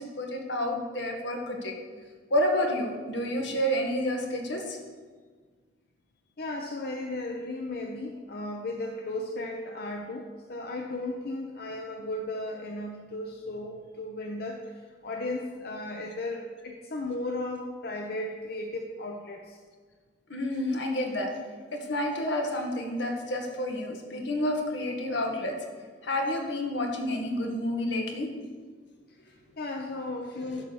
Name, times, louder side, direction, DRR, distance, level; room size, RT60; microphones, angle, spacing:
voice 1, 0.0-1.7 2.3-4.8 20.3-21.3 21.7-25.6 26.0-28.4, left 1 dB, 85° left, 1 dB, 1.7 m, -29 dB
voice 2, 6.4-19.6 29.1-30.6, left 2 dB, 60° left, 2 dB, 0.8 m, -35 dB
11.5 x 4.8 x 7.0 m, 1.5 s
head